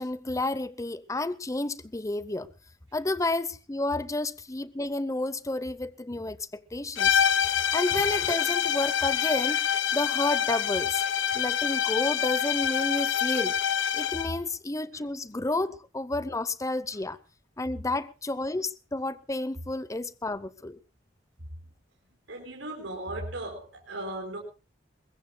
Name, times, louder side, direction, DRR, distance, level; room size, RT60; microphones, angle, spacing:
voice 1, 0.0-2.5 2.9-7.2 7.5-11.0 11.3-13.6 13.9-17.2 17.6-20.8, left 2 dB, 15° left, 0.7 m, -31 dB
sound 1, 7.0-14.4, left 8 dB, 85° left, 0.9 m, -26 dB
voice 2, 22.3-24.4, right 1 dB, 80° right, 4.9 m, -37 dB
22.5 x 21.0 x 2.2 m
head